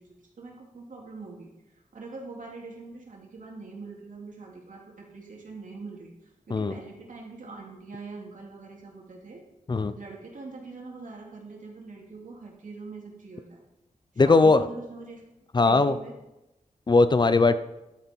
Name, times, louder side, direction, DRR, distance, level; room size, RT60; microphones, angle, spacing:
voice 1, 0.0-1.5 1.9-6.1 6.5-9.4 9.9-13.6 14.2-15.2 15.5-16.2, right 3 dB, 75° right, -1 dB, 2.8 m, -43 dB
voice 2, 14.2-14.6 15.5-16.0 16.9-17.6, left 3 dB, 35° left, 12 dB, 0.5 m, -19 dB
11.5 x 8.9 x 4.6 m, 0.93 s
wide cardioid pair, 130°, 13 cm